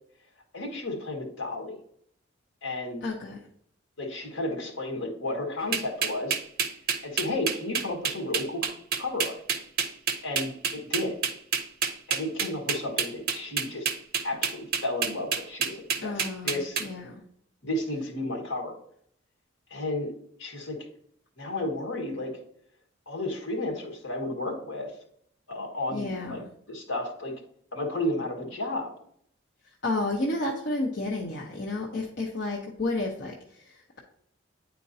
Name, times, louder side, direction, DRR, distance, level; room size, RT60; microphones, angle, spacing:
voice 1, 0.5-1.8 2.6-3.1 4.0-6.4 7.0-8.7 9.0-9.4 10.2-11.1 12.1-13.9 14.2-16.8 17.6-18.8 19.7-20.1 20.4-20.8 21.4-22.3 23.1-24.9 25.5-26.4 26.7-27.3 27.7-28.9, left 1 dB, 70° left, 1 dB, 1.5 m, -32 dB
voice 2, 3.0-3.4 16.0-17.2 25.9-26.4 29.8-33.3 33.6-34.0, left 2 dB, 55° left, -2 dB, 0.8 m, -31 dB
sound 1, 5.7-16.9, right 6 dB, 45° right, 0.7 m, -28 dB
9.6 x 4.4 x 2.7 m, 0.67 s
head